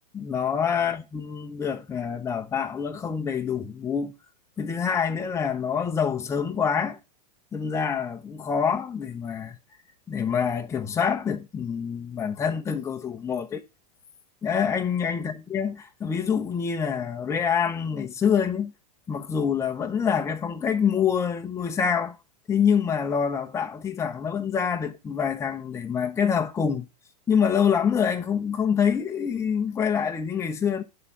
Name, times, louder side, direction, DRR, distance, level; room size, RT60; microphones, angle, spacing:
voice 1, 0.1-4.1 4.6-7.0 7.5-9.6 10.1-13.6 14.4-18.7 19.1-22.2 22.5-26.8 27.3-30.8, left 7 dB, 15° left, 0.8 m, -26 dB
11.0 x 3.8 x 5.4 m
hypercardioid pair, 130°, 21 cm